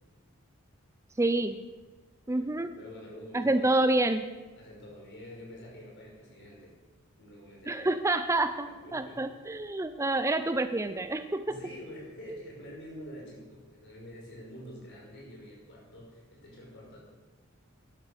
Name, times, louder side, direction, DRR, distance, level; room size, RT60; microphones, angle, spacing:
voice 1, 1.2-1.6 2.3-2.7 3.3-4.2 7.7-11.6, right 2 dB, 15° right, 10 dB, 0.5 m, -28 dB
voice 2, 2.3-3.8 4.6-6.7 7.2-8.0 8.6-9.2 10.2-10.4 10.8-17.0, equal, 55° left, -2 dB, 5.3 m, -48 dB
12.0 x 11.5 x 6.7 m, 1.3 s
head